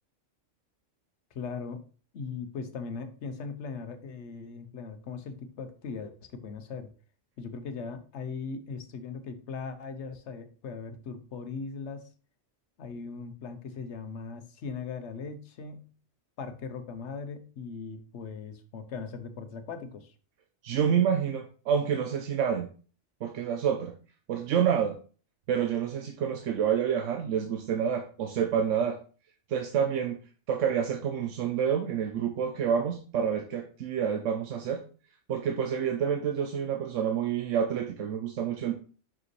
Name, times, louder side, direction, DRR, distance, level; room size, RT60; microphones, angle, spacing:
voice 1, 1.3-1.8 2.1-6.9 7.4-12.1 12.8-15.9 16.4-20.1, left 5 dB, 70° left, 9 dB, 1.1 m, -39 dB
voice 2, 20.6-22.7 23.2-23.9 24.3-25.0 25.5-29.0 29.5-30.2 30.5-34.8 35.3-38.7, right 8 dB, 85° right, 5 dB, 1.0 m, -28 dB
6.1 x 5.0 x 3.1 m, 0.39 s
omnidirectional pair, 1.2 m